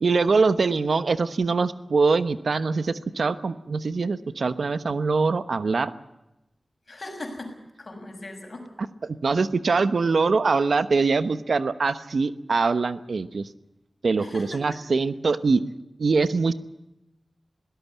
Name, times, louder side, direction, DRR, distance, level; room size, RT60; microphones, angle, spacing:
voice 1, 0.0-5.9 9.0-13.5 14.0-15.6 16.0-16.5, right 4 dB, 75° right, 13 dB, 1.0 m, -23 dB
voice 2, 6.9-8.7 14.2-14.8, left 1 dB, 50° left, 4 dB, 6.3 m, -39 dB
21.5 x 17.5 x 8.4 m, 0.93 s
wide cardioid pair, 85°, 0 cm